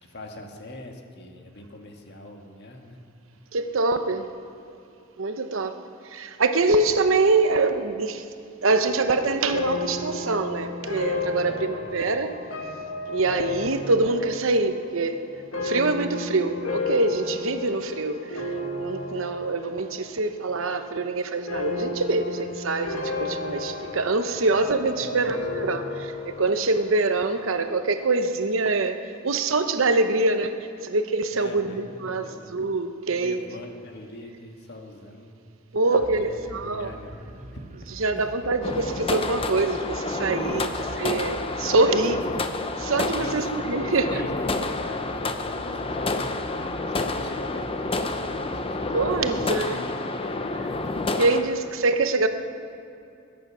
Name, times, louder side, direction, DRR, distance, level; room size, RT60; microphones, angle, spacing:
voice 1, 0.0-3.0 11.4-11.9 25.0-25.7 31.3-32.5 33.1-35.4 35.9-37.6 38.1-38.3 40.6-41.0 43.2-43.5 43.8-48.8 49.2-50.8, left 1 dB, 55° left, 2 dB, 1.7 m, -41 dB
voice 2, 3.5-4.3 5.2-5.7 6.1-8.2 8.6-12.3 13.1-15.2 15.5-18.4 18.8-29.0 29.2-30.5 30.8-33.4 35.7-36.9 38.0-42.2 42.8-44.2 48.9-49.8 51.2-52.3, right 3 dB, 70° right, 8 dB, 0.9 m, -24 dB
sound 1, 8.7-20.1 20.4-21.0 21.5-26.8, left 3 dB, 75° left, 1.9 m, -33 dB
sound 2, 36.0-49.5, right 1 dB, 35° right, 0.7 m, -44 dB
sound 3, 38.6-51.4, left 2 dB, 25° left, 0.7 m, -29 dB
21.5 x 9.3 x 6.2 m, 2.6 s
head